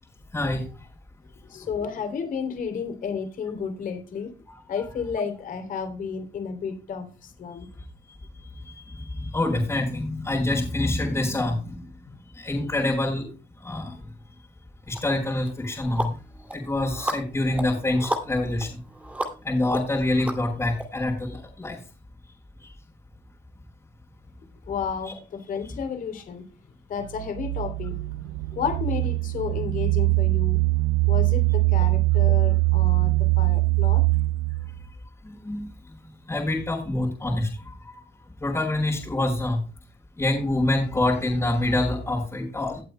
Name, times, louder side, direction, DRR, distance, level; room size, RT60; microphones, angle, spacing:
voice 1, 0.3-0.6 9.1-11.7 12.4-13.3 13.6-13.9 14.9-16.1 16.5-18.8 19.4-21.8 25.1-25.2 35.4-35.7 36.3-37.5 38.4-39.6 40.2-42.8, left 1 dB, 15° left, -2 dB, 4.2 m, -26 dB
voice 2, 1.4-4.3 4.7-7.7 12.1-12.2 24.7-26.4 26.9-28.0 28.5-30.6 31.1-34.0, left 6 dB, 55° left, 7 dB, 3.0 m, -32 dB
sound 1, 14.9-15.0 15.5-20.8, right 1 dB, 10° right, 2.5 m, -34 dB
sound 2, 27.0-34.8, right 23 dB, 75° right, 0.5 m, -22 dB
18.5 x 8.2 x 2.2 m, 0.33 s
cardioid pair, 110°, 17 cm